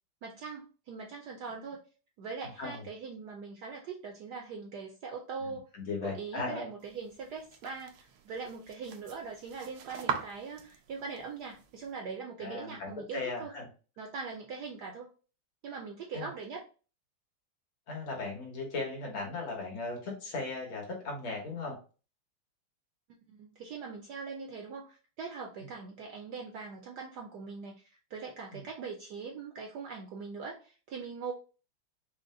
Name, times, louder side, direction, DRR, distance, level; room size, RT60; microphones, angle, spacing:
voice 1, 0.2-1.8 2.2-5.7 6.0-13.5 14.0-15.1 15.6-16.6 23.2-31.3, right 5 dB, 70° right, 2 dB, 1.0 m, -41 dB
voice 2, 5.7-6.7 12.4-13.7 16.1-16.3 17.9-21.8 28.5-28.6, left 3 dB, 80° left, -1 dB, 2.2 m, -37 dB
sound 1, 6.8-11.9, right 8 dB, 90° right, 1.5 m, -42 dB
4.9 x 2.2 x 3.7 m, 0.35 s
omnidirectional pair, 2.2 m